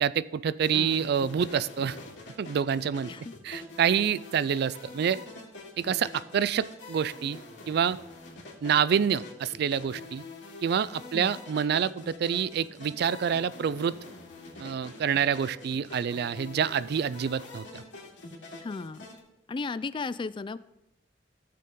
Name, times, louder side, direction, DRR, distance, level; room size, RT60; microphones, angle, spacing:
voice 1, 0.0-2.0 2.4-3.1 3.4-5.2 5.8-7.4 7.7-8.0 8.6-10.2 10.6-13.9 14.6-17.8, right 7 dB, 60° right, 18 dB, 0.3 m, -27 dB
sound 1, 0.6-19.2, left 2 dB, 75° left, 2.5 m, -45 dB
voice 2, 0.7-1.1 3.1-3.3 11.1-11.4 18.6-19.1 19.5-20.6, left 4 dB, 25° left, 16 dB, 0.3 m, -35 dB
15.5 x 6.7 x 3.7 m, 0.92 s
head